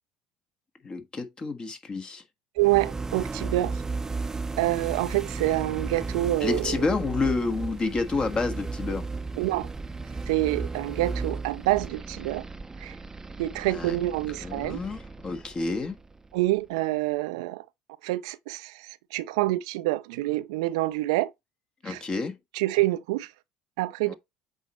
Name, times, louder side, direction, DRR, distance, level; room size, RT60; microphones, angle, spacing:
voice 1, 0.8-2.2 6.4-9.1 13.7-14.0 14.4-16.0 21.8-22.4 24.1-24.2, left 3 dB, 30° left, 1.3 m, -29 dB
sound 1, 2.6-16.5, right 3 dB, 15° right, 0.6 m, -35 dB
voice 2, 2.6-3.8 4.6-6.6 9.4-9.7 10.3-12.4 12.8-12.9 13.4-14.8 16.3-17.6 18.0-21.3 21.9-22.0 22.6-23.3 23.8-24.1, right 17 dB, 70° right, 0.4 m, -27 dB
7.9 x 4.1 x 3.0 m
hypercardioid pair, 65°, 3 cm